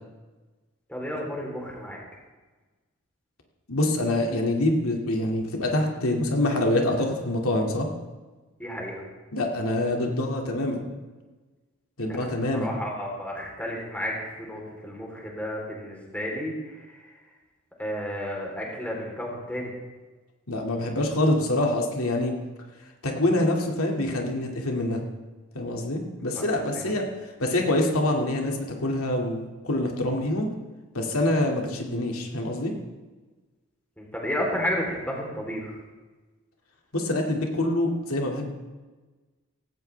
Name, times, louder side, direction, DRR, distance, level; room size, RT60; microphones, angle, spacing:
voice 1, 0.9-2.0 8.6-9.1 12.1-17.1 17.8-19.7 26.3-26.5 26.7-27.0 34.0-35.7, equal, 5° left, -2 dB, 3.5 m, -32 dB
voice 2, 3.7-7.9 9.3-10.8 12.0-12.8 20.5-22.4 23.0-25.0 25.5-30.5 30.9-32.7 36.9-38.5, left 1 dB, 80° left, 1 dB, 2.3 m, -25 dB
17.5 x 17.0 x 3.4 m, 1.3 s
head